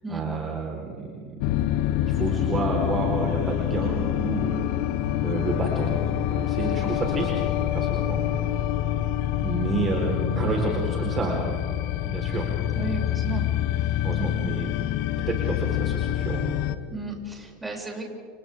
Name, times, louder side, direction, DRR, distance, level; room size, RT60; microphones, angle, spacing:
voice 1, 0.1-4.7 5.2-7.3 7.6-8.2 9.4-11.4 12.0-12.5 14.0-14.9 15.3-16.5, right 3 dB, 30° right, -1 dB, 4.4 m, -30 dB
sound 1, 1.4-16.8, left 12 dB, 60° left, 1.1 m, -26 dB
voice 2, 6.6-7.0 12.7-13.5 13.8-14.0 16.9-18.0, right 3 dB, 10° right, -1 dB, 7.2 m, -34 dB
29.5 x 29.5 x 3.8 m, 2.3 s
hypercardioid pair, 85°, 0 cm